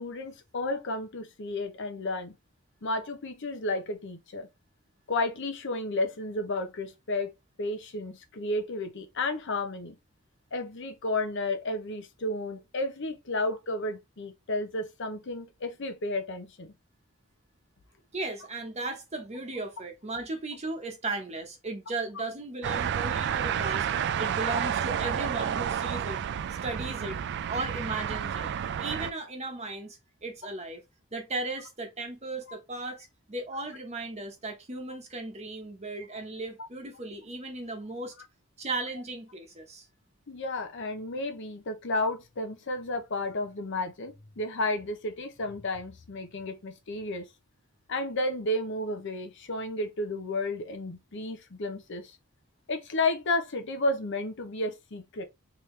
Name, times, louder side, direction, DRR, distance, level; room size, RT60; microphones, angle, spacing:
voice 1, 0.0-2.3 2.8-4.5 5.1-7.3 7.6-10.0 10.5-16.7 36.6-36.7 40.3-47.3 47.9-52.2 52.7-55.2, left 2 dB, 60° left, 0.7 m, -32 dB
voice 2, 18.1-26.2 26.6-27.2 27.5-28.5 28.8-30.8 31.1-38.1 38.6-39.9, right 2 dB, 30° right, 1.0 m, -36 dB
sound 1, 22.6-29.1, right 8 dB, 55° right, 0.3 m, -30 dB
3.6 x 3.0 x 3.2 m
head